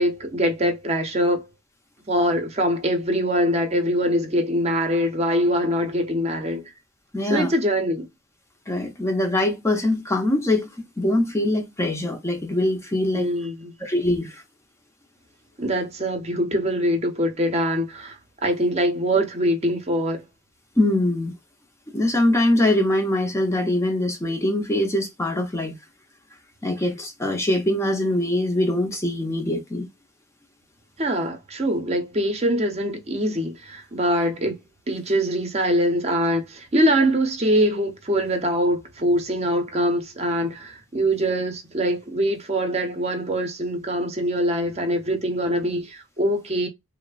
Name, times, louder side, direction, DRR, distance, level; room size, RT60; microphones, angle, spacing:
voice 1, 0.0-1.4 2.1-6.6 7.3-8.1 13.1-13.7 15.6-20.2 31.0-34.6 34.9-46.7, equal, 30° right, 0.6 m, -23 dB
voice 2, 7.1-7.5 8.7-10.7 11.0-13.3 13.8-14.4 20.8-21.3 21.9-25.8 26.6-29.9, left 1 dB, 15° left, 0.5 m, -23 dB
3.1 x 2.0 x 2.3 m
head